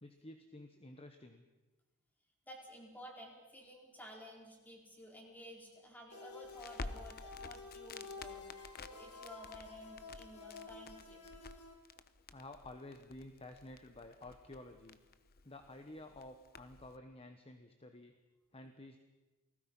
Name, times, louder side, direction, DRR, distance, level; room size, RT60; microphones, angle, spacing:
voice 1, 0.0-1.4 12.3-15.0 15.4-18.1 18.5-19.0, left 2 dB, 25° left, 6 dB, 1.2 m, -52 dB
voice 2, 2.5-11.3, equal, 10° left, 0 dB, 4.6 m, -53 dB
sound 1, 6.1-11.7, left 4 dB, 90° left, 3.0 m, -51 dB
Crackle, 6.4-17.0, left 3 dB, 45° left, 1.0 m, -52 dB
29.0 x 19.5 x 5.6 m, 1.2 s
head